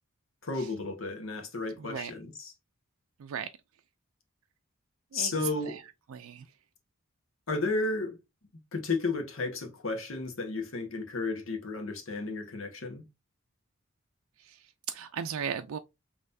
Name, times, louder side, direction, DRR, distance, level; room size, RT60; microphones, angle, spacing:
voice 1, 0.4-2.5 5.1-5.8 7.5-8.2 8.7-13.1, left 3 dB, 70° left, 1.2 m, -33 dB
voice 2, 1.8-2.1 3.2-3.5 5.1-5.3 5.7-5.8 6.1-6.4 14.4-14.6 14.9-15.8, right 7 dB, 85° right, 0.4 m, -36 dB
5.5 x 3.1 x 2.6 m
head